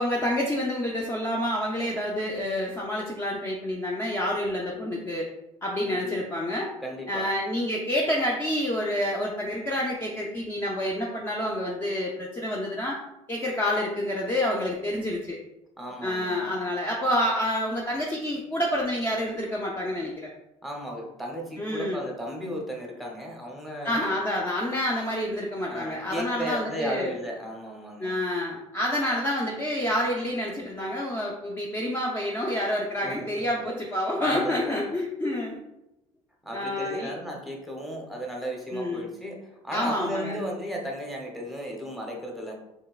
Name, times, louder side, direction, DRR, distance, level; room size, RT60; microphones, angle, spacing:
voice 1, 0.0-5.3 5.6-6.7 7.1-13.0 13.3-15.4 16.0-20.3 21.6-22.0 23.8-27.1 28.0-35.6 36.5-37.1 38.7-39.1 39.7-40.4, left 1 dB, 20° left, -2 dB, 0.5 m, -28 dB
voice 2, 5.9-6.2 6.8-7.3 15.8-16.6 20.6-24.1 25.7-28.1 33.0-33.6 34.2-34.9 36.4-42.5, equal, ahead, -1 dB, 0.9 m, -35 dB
4.5 x 3.2 x 2.4 m, 0.89 s
cardioid pair, 115°, 12 cm